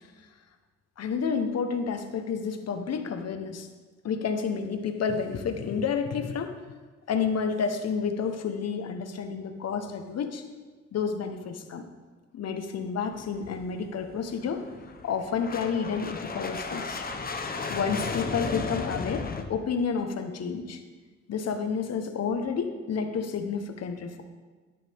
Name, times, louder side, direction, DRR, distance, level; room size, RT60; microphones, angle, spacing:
voice 1, 1.0-3.7 4.0-6.6 7.1-10.4 10.9-11.9 12.3-14.6 15.0-17.0 17.7-20.8 21.3-24.2, left 6 dB, 55° left, 7 dB, 1.2 m, -30 dB
sound 1, 13.1-19.4, left 4 dB, 30° left, 1.1 m, -35 dB
13.0 x 11.0 x 3.6 m, 1.4 s
cardioid pair, 90°, 30 cm